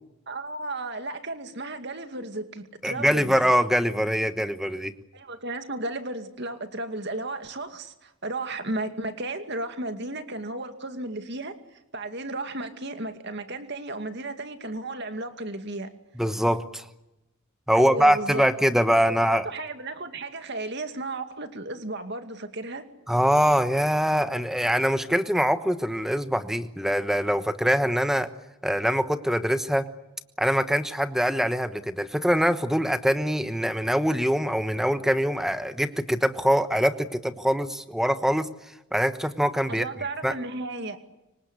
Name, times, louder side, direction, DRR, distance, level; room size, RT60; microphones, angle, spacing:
voice 1, 0.3-3.5 5.1-11.5 11.9-15.9 17.7-18.5 18.9-22.8 39.7-41.0, right 2 dB, 50° right, 8 dB, 2.4 m, -34 dB
voice 2, 2.8-4.9 16.2-16.8 17.7-19.5 23.1-28.3 28.6-29.9 30.4-38.5 38.9-39.8 40.2-40.3, equal, ahead, 10 dB, 1.1 m, -23 dB
26.0 x 24.5 x 8.4 m, 0.94 s
head